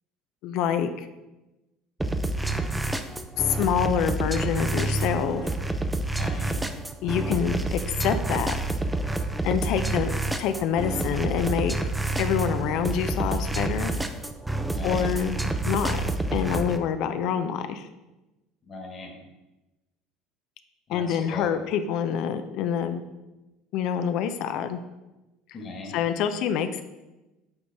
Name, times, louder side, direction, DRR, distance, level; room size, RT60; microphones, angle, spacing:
voice 1, 0.4-1.1 3.5-5.5 7.0-8.6 9.4-10.1 10.4-11.7 12.2-13.9 14.8-16.0 16.3-17.9 20.9-23.0 23.7-24.8 25.9-26.8, left 8 dB, 65° left, 9 dB, 0.5 m, -26 dB
sound 1, 2.0-16.8, right 2 dB, 10° right, 0.5 m, -28 dB
voice 2, 6.1-6.6 9.4-9.5 14.6-15.1 18.7-19.1 20.9-21.5 25.5-26.0, left 2 dB, 40° left, 2 dB, 1.6 m, -39 dB
7.9 x 4.0 x 3.5 m, 1.0 s
supercardioid pair, 95°, 0 cm